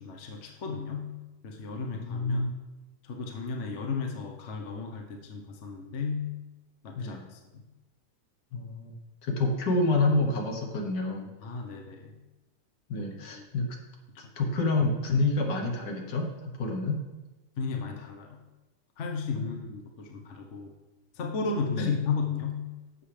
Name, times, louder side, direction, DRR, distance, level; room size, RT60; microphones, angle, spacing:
voice 1, 0.0-2.5 3.0-6.4 6.8-7.4 11.4-12.1 13.0-13.5 17.6-18.4 19.0-20.7 21.1-22.7, left 5 dB, 45° left, 2 dB, 1.1 m, -34 dB
voice 2, 1.9-2.5 6.9-7.3 8.5-8.9 9.2-11.3 12.9-13.7 14.4-17.0 19.3-19.4 21.8-21.9, left 2 dB, 60° left, 2 dB, 1.7 m, -28 dB
11.5 x 7.6 x 3.3 m, 1.1 s
omnidirectional pair, 2.2 m